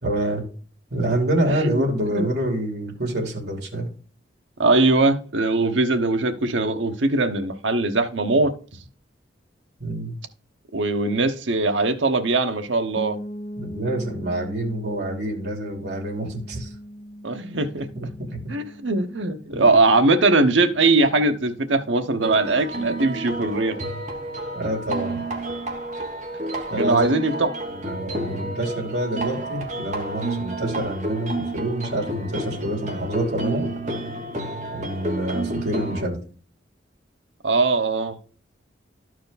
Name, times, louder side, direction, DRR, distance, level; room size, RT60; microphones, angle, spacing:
voice 1, 0.0-0.5 0.9-3.9 9.8-10.1 13.6-16.7 17.9-18.4 19.5-19.6 24.5-25.2 26.7-27.1 27.7-33.6 34.7-36.2, right 1 dB, 60° right, 2.7 m, -27 dB
voice 2, 4.6-8.5 10.7-13.2 17.2-17.9 18.5-23.8 26.8-27.5 37.4-38.2, right 3 dB, 85° right, 1.0 m, -21 dB
sound 1, 13.0-22.6, equal, 35° left, 0.7 m, -40 dB
sound 2, 22.2-36.0, right 2 dB, 40° right, 1.4 m, -30 dB
12.5 x 4.7 x 4.1 m
head